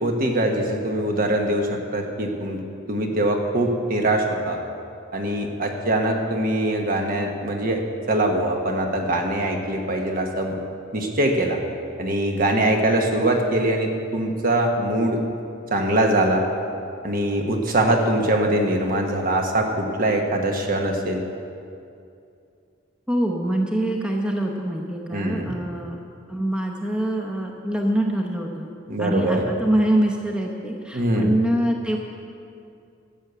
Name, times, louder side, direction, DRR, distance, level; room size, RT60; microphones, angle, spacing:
voice 1, 0.0-2.6 2.9-4.6 5.1-7.8 8.1-10.5 10.9-11.6 12.0-15.2 15.7-16.4 17.0-21.2 25.1-25.5 28.9-29.5 30.9-31.3, right 1 dB, 45° right, 2 dB, 1.3 m, -22 dB
voice 2, 23.1-26.0 26.3-28.7 29.0-32.0, right 1 dB, 5° right, 0 dB, 0.8 m, -24 dB
13.0 x 7.0 x 7.9 m, 2.5 s
head